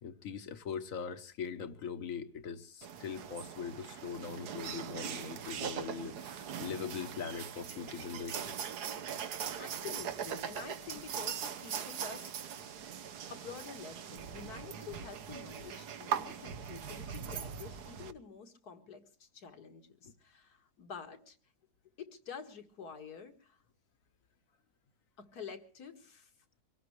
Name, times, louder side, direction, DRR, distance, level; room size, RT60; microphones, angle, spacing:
voice 1, 0.0-8.5, left 6 dB, 60° left, 1.4 m, -41 dB
sound 1, 2.8-18.1, right 8 dB, 80° right, 1.5 m, -41 dB
voice 2, 9.3-12.7 13.3-21.4 22.0-23.6 25.2-26.3, left 6 dB, 75° left, 2.1 m, -48 dB
24.0 x 18.0 x 3.2 m
omnidirectional pair, 1.7 m